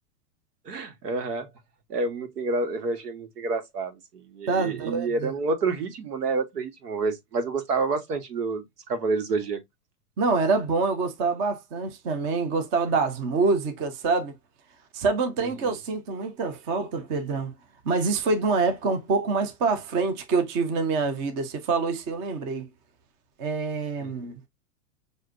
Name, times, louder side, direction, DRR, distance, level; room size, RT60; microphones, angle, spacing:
voice 1, 0.6-1.5 1.9-9.6 15.4-15.7 24.0-24.2, right 3 dB, 90° right, 1.3 m, -29 dB
voice 2, 4.5-5.3 10.2-14.3 14.9-17.5 17.9-22.7 23.4-24.4, right 4 dB, 20° right, 0.3 m, -26 dB
6.4 x 2.5 x 2.5 m
hypercardioid pair, 130°, 46 cm